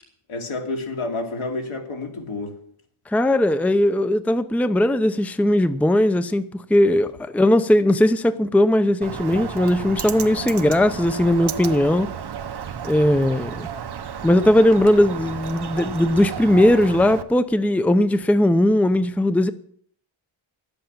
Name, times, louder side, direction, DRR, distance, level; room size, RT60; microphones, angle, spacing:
voice 1, 0.3-2.6, left 2 dB, 75° left, 2.7 m, -29 dB
voice 2, 3.1-12.1 12.8-13.7 14.2-19.5, left 1 dB, 5° left, 0.6 m, -18 dB
Bird, 9.0-17.2, right 8 dB, 50° right, 0.9 m, -32 dB
11.5 x 8.1 x 8.8 m
wide cardioid pair, 100°, 49 cm